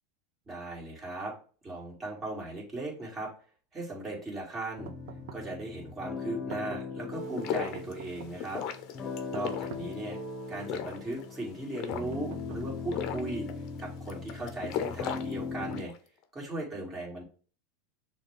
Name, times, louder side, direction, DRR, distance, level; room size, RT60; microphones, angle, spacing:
voice 1, 0.5-1.3 1.6-3.3 3.7-4.9 5.3-8.6 9.3-10.2 10.5-13.5 13.8-15.9 16.3-17.2, right 2 dB, 20° right, -3 dB, 2.1 m, -37 dB
sound 1, 4.8-15.8, left 4 dB, 25° left, 0.9 m, -40 dB
sound 2, 4.8-5.6 6.3-7.0 7.7-8.5 9.3-10.1 10.8-11.4 12.1-13.0, right 9 dB, 70° right, 0.5 m, -47 dB
sound 3, 7.1-16.0, left 9 dB, 50° left, 0.6 m, -38 dB
6.2 x 2.2 x 3.3 m, 0.39 s
supercardioid pair, 120°, 0 cm